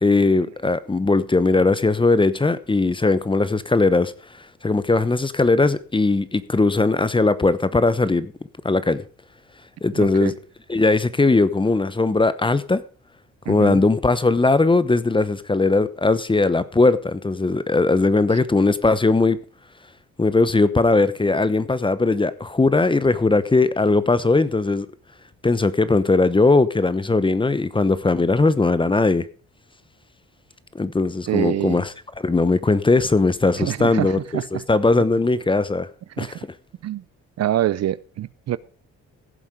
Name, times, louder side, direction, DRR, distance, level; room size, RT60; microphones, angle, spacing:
voice 1, 0.0-4.1 4.6-8.3 8.6-9.0 9.8-10.3 10.7-12.8 13.5-19.4 20.2-24.9 25.4-29.3 30.7-35.9 36.2-36.5, left 3 dB, 15° left, 0.9 m, -19 dB
voice 2, 10.0-10.3 13.5-13.8 31.3-31.8 33.5-34.6 36.2-36.3 36.8-37.0 37.4-38.6, right 12 dB, 60° right, 0.6 m, -25 dB
16.0 x 7.2 x 5.1 m
cardioid pair, 90°, 30 cm